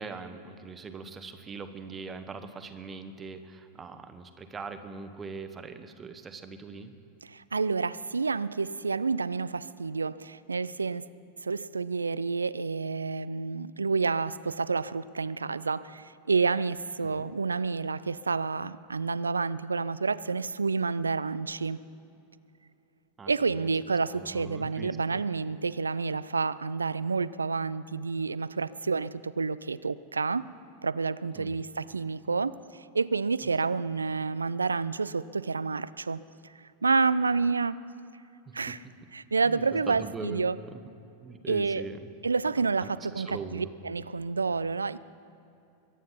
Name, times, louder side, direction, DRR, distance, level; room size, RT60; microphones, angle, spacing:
voice 1, 0.0-6.9 17.0-17.3 23.2-23.7 24.1-25.2 31.3-31.6 38.5-38.8 39.5-40.7 41.2-42.0 42.8-43.7, right 4 dB, 20° right, 8 dB, 1.1 m, -41 dB
voice 2, 7.3-11.1 11.4-21.8 23.3-30.5 30.8-36.2 36.8-37.8 38.5-38.8 39.1-40.6 41.5-41.8 42.2-45.0, right 4 dB, 75° right, 18 dB, 0.3 m, -29 dB
22.5 x 9.2 x 5.7 m, 2.8 s
figure-of-eight pair, 90°, 0 cm